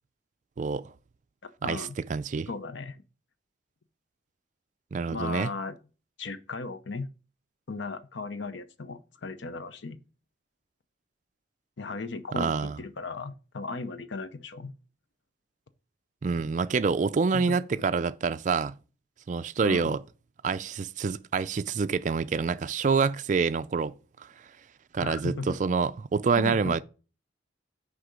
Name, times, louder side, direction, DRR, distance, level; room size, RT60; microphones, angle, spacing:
voice 1, 0.6-0.9 1.6-2.5 4.9-5.5 12.3-12.8 16.2-18.8 19.3-20.0 20.4-24.3 24.9-26.8, right 5 dB, 40° right, 0.3 m, -27 dB
voice 2, 1.4-2.0 2.5-3.0 5.1-5.7 6.2-7.1 7.7-10.0 11.8-14.7 17.3-17.6 19.6-20.0 25.0-25.6 26.4-26.8, left 3 dB, 75° left, 0.7 m, -36 dB
6.5 x 5.0 x 4.8 m
head